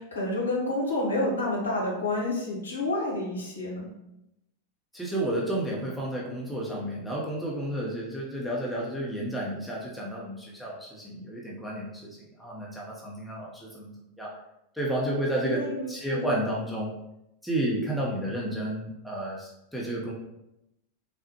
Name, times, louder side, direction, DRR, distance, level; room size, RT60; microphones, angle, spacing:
voice 1, 0.0-3.9 15.4-16.5, left 2 dB, 75° left, -3 dB, 0.9 m, -29 dB
voice 2, 4.9-14.3 14.7-16.9 17.4-20.1, right 1 dB, ahead, -5 dB, 0.6 m, -31 dB
3.5 x 2.1 x 2.8 m, 0.86 s
figure-of-eight pair, 90°, 0 cm